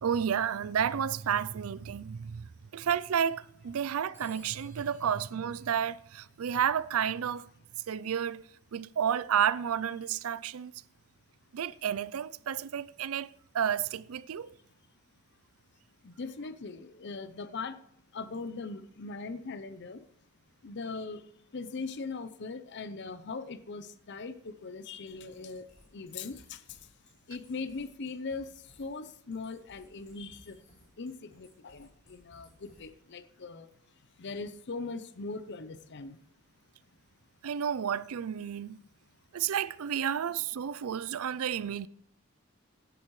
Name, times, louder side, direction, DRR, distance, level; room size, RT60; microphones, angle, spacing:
voice 1, 0.0-7.5 7.9-8.4 8.7-10.7 11.5-13.3 13.5-14.5 37.4-38.8 39.3-41.9, right 8 dB, 75° right, 0.4 m, -31 dB
Telephone, 4.1-6.6, right 2 dB, 10° right, 4.9 m, -59 dB
voice 2, 16.0-17.8 18.1-20.0 20.6-21.2 21.5-25.6 25.9-26.6 27.3-28.5 28.8-30.6 31.0-33.7 34.2-36.2, left 4 dB, 55° left, 0.7 m, -40 dB
sound 1, 25.1-33.1, left 1 dB, 35° left, 4.9 m, -61 dB
16.0 x 11.0 x 3.2 m
head